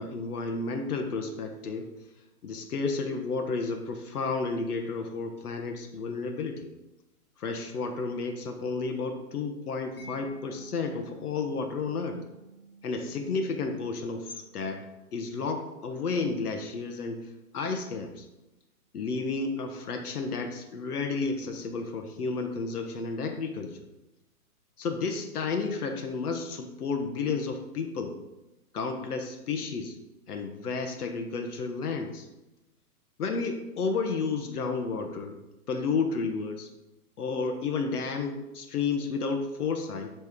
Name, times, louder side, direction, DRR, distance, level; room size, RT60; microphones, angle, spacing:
voice 1, 0.0-1.9 2.4-6.7 7.4-12.2 12.8-14.9 15.1-18.3 18.9-23.9 24.8-28.2 28.7-30.0 30.3-32.3 33.2-35.4 35.7-36.7 37.2-40.1, left 4 dB, 75° left, 4 dB, 1.0 m, -32 dB
Mallet percussion, 10.0-16.7, right 3 dB, 35° left, 1.4 m, -52 dB
9.3 x 3.4 x 3.6 m, 0.98 s
hypercardioid pair, 160°, 46 cm